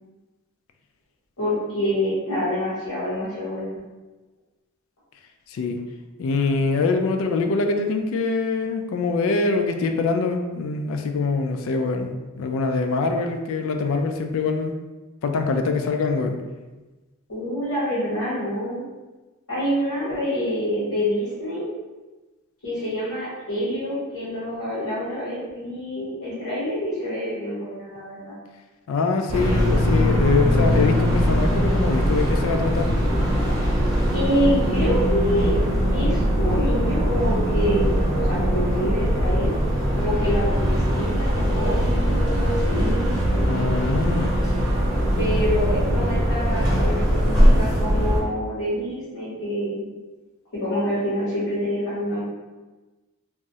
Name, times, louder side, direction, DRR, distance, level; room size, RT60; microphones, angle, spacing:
voice 1, 1.4-3.8 17.3-18.8 19.5-21.7 22.6-28.4 34.1-35.5 35.9-39.5 40.0-43.0 45.2-49.8 50.5-52.2, equal, 85° left, -13 dB, 1.3 m, -26 dB
voice 2, 6.2-14.7 15.2-16.4 28.9-32.9 43.5-44.3, left 3 dB, 65° left, 5 dB, 0.3 m, -24 dB
sound 1, 29.3-48.2, equal, 20° right, 0.7 m, -21 dB
3.4 x 2.0 x 2.7 m, 1.2 s
head